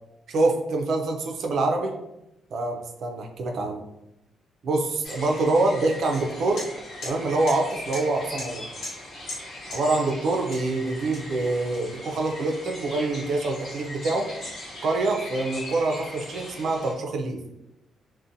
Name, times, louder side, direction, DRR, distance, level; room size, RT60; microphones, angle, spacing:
voice 1, 0.3-1.9 2.5-3.8 4.6-6.6 7.0-8.6 9.7-14.3 14.8-17.4, right 2 dB, 55° right, 3 dB, 0.4 m, -25 dB
sound 1, 5.0-16.9, left 1 dB, 45° left, 0.8 m, -40 dB
sound 2, 6.1-6.2 6.6-6.7 7.0-7.1 7.5-7.6 7.9-8.0 8.4-8.5 8.8-9.0 9.3-9.4 9.7-9.8 10.5-10.7 11.1-12.2, left 2 dB, 75° left, 1.1 m, -37 dB
2.5 x 2.1 x 2.6 m, 0.89 s
cardioid pair, 155°, 0 cm